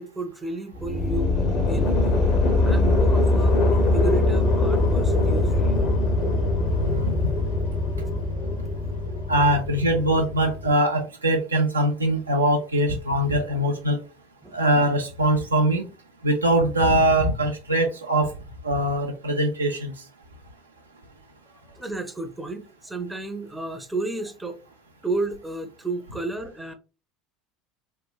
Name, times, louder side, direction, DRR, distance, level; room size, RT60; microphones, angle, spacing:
voice 1, 0.0-1.4 1.7-2.0 2.6-5.8 14.4-14.6 21.5-24.6 25.0-26.7, right 2 dB, 10° right, 0.5 m, -32 dB
sound 1, 0.7-10.7, left 2 dB, 55° left, 0.6 m, -22 dB
voice 2, 9.3-14.0 14.5-15.8 16.2-18.3 18.6-19.9, right 1 dB, 85° right, 0.4 m, -22 dB
3.0 x 2.1 x 2.2 m
figure-of-eight pair, 70°, 0 cm